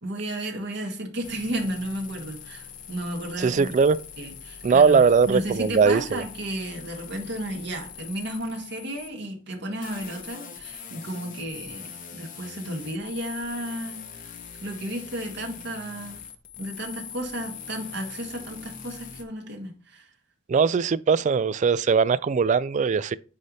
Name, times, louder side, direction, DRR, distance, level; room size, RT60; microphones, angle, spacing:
voice 1, 0.0-3.7 4.2-16.2 16.6-20.1, right 1 dB, 60° right, 1.9 m, -33 dB
sound 1, 1.2-9.1 9.8-19.2, left 7 dB, 40° left, 0.8 m, -42 dB
voice 2, 3.4-4.0 4.6-6.2 20.5-23.2, right 5 dB, 35° right, 0.3 m, -20 dB
9.3 x 3.3 x 4.0 m
head